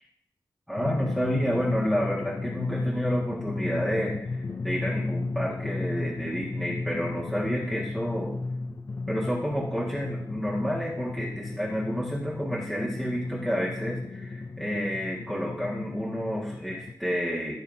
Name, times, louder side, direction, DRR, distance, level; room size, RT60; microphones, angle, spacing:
voice 1, 0.7-8.4 9.1-17.6, equal, ahead, -7 dB, 1.6 m, -30 dB
Drum, 0.8-16.9, left 3 dB, 35° left, 0.5 m, -34 dB
13.5 x 6.5 x 2.7 m, 0.72 s
wide cardioid pair, 140°, 8 cm